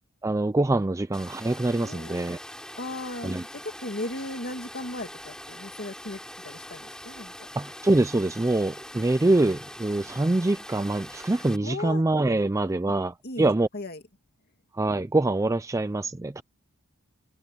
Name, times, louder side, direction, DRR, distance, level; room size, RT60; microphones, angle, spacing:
voice 1, 0.2-2.4 3.2-3.4 7.6-13.7 14.7-16.4, right 2 dB, 15° right, 0.4 m, -24 dB
Water, 1.1-11.6, left 1 dB, 5° left, 5.4 m, -43 dB
voice 2, 1.8-2.3 2.8-7.3 11.6-12.0 13.2-14.0, left 2 dB, 45° left, 2.3 m, -37 dB
head